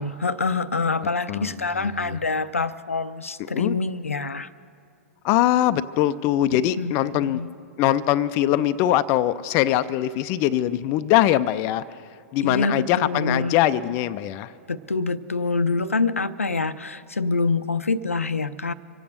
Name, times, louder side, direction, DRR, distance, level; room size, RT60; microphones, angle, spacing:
voice 1, 0.0-4.5 6.8-6.9 7.2-7.5 12.4-13.6 14.7-18.7, left 3 dB, 85° left, 13 dB, 0.5 m, -26 dB
voice 2, 1.3-2.2 3.5-3.8 5.2-7.4 7.8-11.8 12.3-14.5, left 13 dB, 35° left, 13 dB, 0.4 m, -22 dB
25.0 x 8.5 x 6.7 m, 2.4 s
figure-of-eight pair, 105°, 7 cm